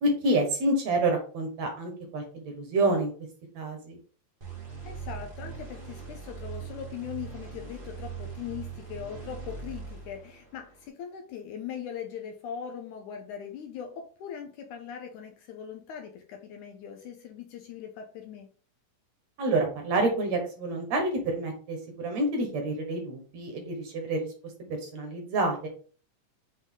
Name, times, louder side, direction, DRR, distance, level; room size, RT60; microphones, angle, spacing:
voice 1, 0.0-3.1 3.6-4.0 19.4-24.3 24.8-25.7, right 2 dB, 60° right, 3 dB, 2.1 m, -28 dB
sound 1, 4.4-10.9, right 6 dB, 40° right, 0.7 m, -41 dB
voice 2, 4.8-18.5, left 8 dB, 75° left, 4 dB, 2.0 m, -40 dB
6.3 x 4.0 x 3.6 m, 0.40 s
omnidirectional pair, 4.0 m